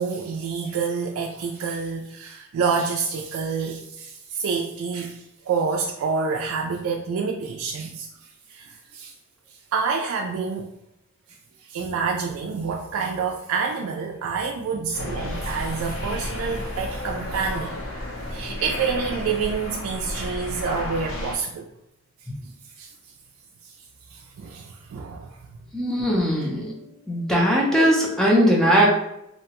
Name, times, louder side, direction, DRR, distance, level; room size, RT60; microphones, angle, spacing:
voice 1, 0.0-8.1 8.5-9.1 9.7-10.7 11.6-17.7 18.3-21.7 22.8-22.9 23.6-23.7 24.1-25.4, right 5 dB, 90° right, 1 dB, 0.3 m, -28 dB
sound 1, 14.9-21.3, left 1 dB, 80° left, 0.8 m, -32 dB
voice 2, 25.7-26.8 27.1-28.9, equal, 5° left, -3 dB, 0.5 m, -19 dB
2.8 x 2.1 x 2.9 m, 0.81 s
head